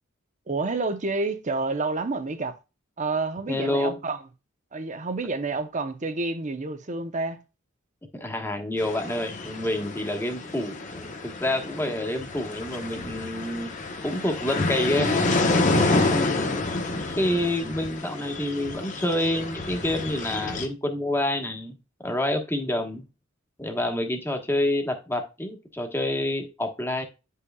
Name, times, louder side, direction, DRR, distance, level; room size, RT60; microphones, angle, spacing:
voice 1, 0.5-2.6 3.0-4.2 4.7-7.4 16.5-16.6, right 3 dB, 40° right, 0.9 m, -29 dB
voice 2, 3.5-4.0 8.1-15.3 16.0-21.7 22.0-23.0 23.6-27.0, left 1 dB, 10° left, 1.4 m, -28 dB
sound 1, 8.8-20.7, left 2 dB, 40° left, 1.1 m, -28 dB
9.6 x 5.7 x 2.4 m
head